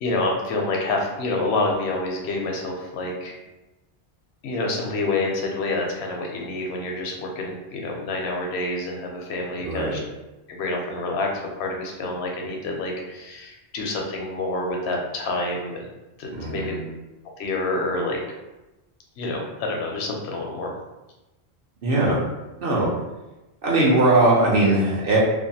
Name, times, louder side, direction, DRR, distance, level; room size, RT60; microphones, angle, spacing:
voice 1, 0.0-3.3 4.4-10.0 10.5-15.9 16.2-16.7 17.4-18.2 19.2-20.7, left 2 dB, 85° left, 0 dB, 0.9 m, -27 dB
voice 2, 16.4-16.8 21.8-22.2 22.6-22.9 23.6-25.2, right 2 dB, 60° right, -5 dB, 0.8 m, -20 dB
2.5 x 2.2 x 2.7 m, 1.0 s
omnidirectional pair, 1.1 m